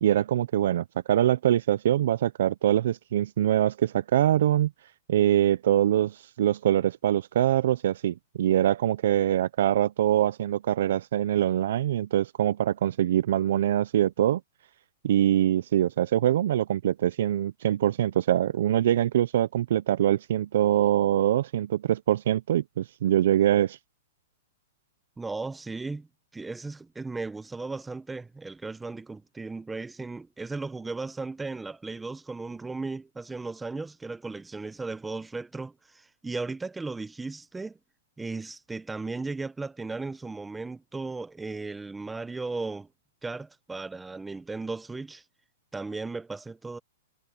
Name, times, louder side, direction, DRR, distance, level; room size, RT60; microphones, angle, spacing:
voice 1, 0.0-4.7 5.1-14.4 15.0-23.8, right 11 dB, 65° right, 0.5 m, -24 dB
voice 2, 25.2-26.1 26.3-37.8 38.2-42.9 43.2-45.2 45.7-46.8, right 3 dB, 5° right, 0.8 m, -36 dB
hypercardioid pair, 155°, 0 cm